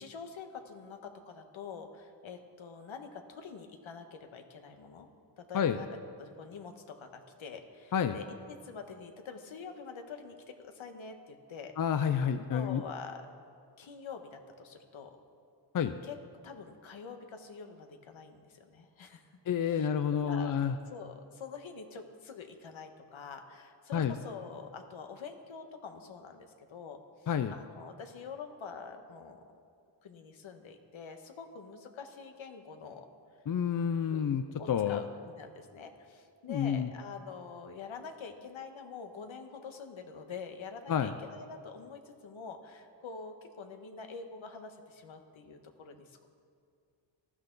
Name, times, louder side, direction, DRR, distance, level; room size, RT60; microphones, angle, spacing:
voice 1, 0.0-5.1 5.4-5.9 6.2-11.7 12.5-13.3 13.8-15.2 16.0-16.2 16.4-19.3 19.6-19.9 20.2-20.5 20.9-29.4 30.0-33.1 34.1-46.3, left 5 dB, 75° left, 5 dB, 1.5 m, -46 dB
voice 2, 11.8-12.8 15.7-15.9 19.5-20.7 23.9-24.2 27.3-27.5 33.5-35.0 36.5-36.9 40.9-41.1, left 8 dB, 45° left, 10 dB, 0.6 m, -29 dB
19.0 x 13.5 x 4.0 m, 2.3 s
cardioid pair, 95°, 48 cm